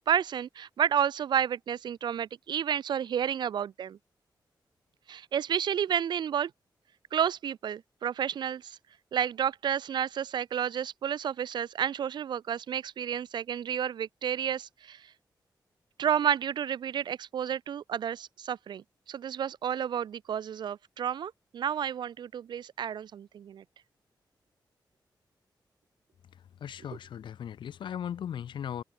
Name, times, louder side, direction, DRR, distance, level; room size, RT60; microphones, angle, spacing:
voice 1, 0.0-4.0 5.1-6.5 7.1-8.8 9.1-15.0 16.0-18.8 19.1-23.6, right 9 dB, 70° right, 0.3 m, -31 dB
voice 2, 26.6-28.8, left 9 dB, 90° left, 0.8 m, -37 dB
cardioid pair, 95°, 8 cm